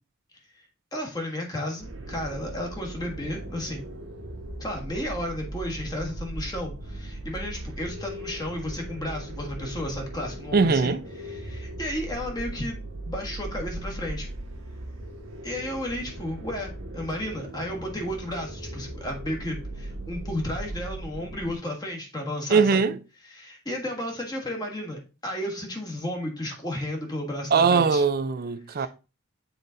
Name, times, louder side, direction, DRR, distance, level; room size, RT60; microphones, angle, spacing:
voice 1, 0.9-3.9 4.6-14.3 15.4-22.8 23.2-28.0 28.7-28.9, left 1 dB, 20° left, 1.4 m, -33 dB
sound 1, 1.8-21.5, right 1 dB, 65° right, 1.2 m, -38 dB
voice 2, 10.5-11.0 22.5-23.0 27.5-28.9, right 5 dB, 45° right, 0.4 m, -21 dB
7.3 x 4.0 x 3.9 m
head